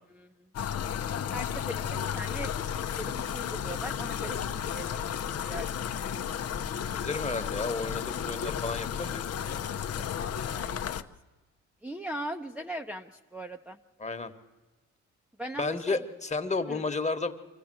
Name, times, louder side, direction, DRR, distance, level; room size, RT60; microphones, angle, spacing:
sound 1, 0.5-11.0, left 8 dB, 55° left, 0.9 m, -33 dB
voice 1, 1.3-5.1 5.4-6.3 10.2-10.3 10.5-11.1 11.8-13.8 15.4-16.0 16.7-16.8, right 1 dB, 5° right, 0 dB, 0.9 m, -40 dB
voice 2, 6.9-9.2 14.0-14.3 15.6-17.3, left 3 dB, 25° left, 8 dB, 1.5 m, -32 dB
25.0 x 15.5 x 7.7 m, 1.3 s
cardioid pair, 90°, 30 cm